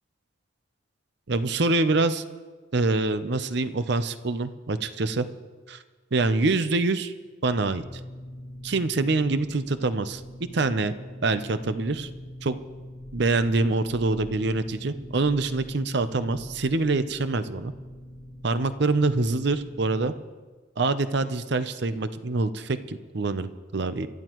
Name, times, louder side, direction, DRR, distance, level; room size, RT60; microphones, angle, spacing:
voice 1, 1.3-2.2 2.7-5.3 5.7-5.8 6.1-7.1 7.4-7.8 8.6-10.2 10.5-10.9 11.2-12.1 12.4-12.5 13.1-17.7 18.4-20.1 20.8-24.1, right 3 dB, 55° right, 11 dB, 0.6 m, -25 dB
sound 1, 7.6-20.1, equal, 35° right, 3.8 m, -43 dB
25.5 x 13.0 x 3.1 m, 1.4 s
head